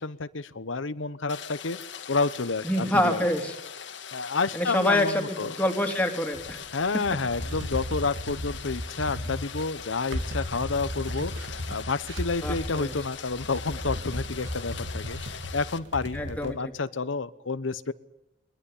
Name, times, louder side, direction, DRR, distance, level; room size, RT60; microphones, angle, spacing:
voice 1, 0.0-3.3 4.1-5.6 6.7-17.9, left 4 dB, 85° left, 14 dB, 1.0 m, -30 dB
Rain, 1.3-15.8, left 8 dB, 70° left, 1.7 m, -41 dB
voice 2, 2.6-3.6 4.5-6.6 12.4-12.9 16.1-16.7, left 1 dB, 10° left, 3 dB, 3.1 m, -26 dB
sound 1, 6.3-16.5, equal, 65° right, 2.6 m, -35 dB
22.5 x 21.5 x 8.4 m, 0.88 s
head